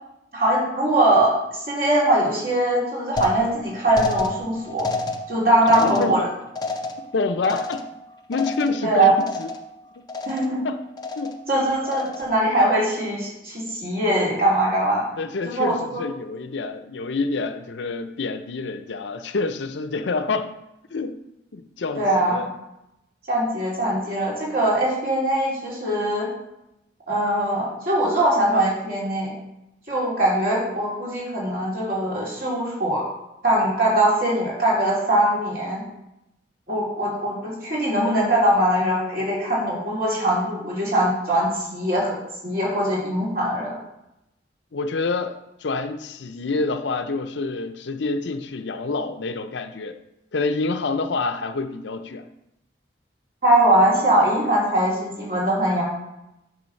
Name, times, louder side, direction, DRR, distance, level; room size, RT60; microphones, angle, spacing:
voice 1, 0.3-1.4 1.7-4.9 5.3-6.2 8.8-9.1 10.3-10.6 11.5-15.0 15.4-16.0 21.9-22.4 23.3-26.3 27.1-29.3 29.9-33.0 33.4-35.8 36.7-42.1 42.4-43.8 53.4-55.8, right 1 dB, 50° right, -6 dB, 3.1 m, -21 dB
sound 1, 3.2-8.9 9.2-9.8 10.1-10.6 11.0-11.5 11.9-12.4, left 3 dB, 20° left, 0.5 m, -31 dB
voice 2, 5.7-6.3 7.1-7.8 8.3-9.5 10.5-10.8 11.2-11.4 15.2-20.5 20.9-21.2 21.5-22.5 44.7-45.4 45.6-50.0 50.3-52.3, left 3 dB, 70° left, 8 dB, 0.5 m, -27 dB
8.7 x 3.3 x 6.4 m, 0.88 s
head